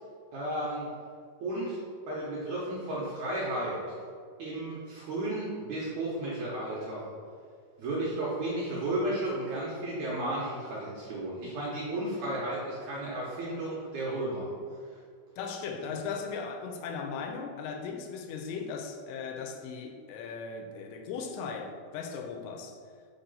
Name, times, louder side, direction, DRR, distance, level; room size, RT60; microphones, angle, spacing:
voice 1, 0.3-0.9 1.4-1.8 2.1-3.8 4.4-7.1 7.8-14.5, right 1 dB, 70° right, 1.9 m, -33 dB
voice 2, 15.4-22.8, left 5 dB, 80° left, 2.6 m, -37 dB
5.7 x 4.3 x 5.4 m
omnidirectional pair, 4.7 m